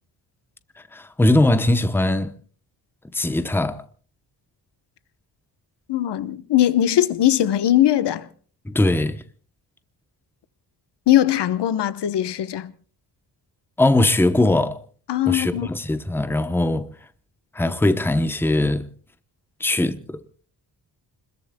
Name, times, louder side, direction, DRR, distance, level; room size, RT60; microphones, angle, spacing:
voice 1, 0.9-2.4 3.1-3.8 8.7-9.2 13.8-14.8 15.3-16.9 17.5-18.9 19.6-20.2, left 1 dB, 5° left, 0.8 m, -20 dB
voice 2, 5.9-8.3 11.1-12.7 15.1-15.7, left 12 dB, 80° left, 1.1 m, -20 dB
29.5 x 21.5 x 2.2 m
wide cardioid pair, 165°, 41 cm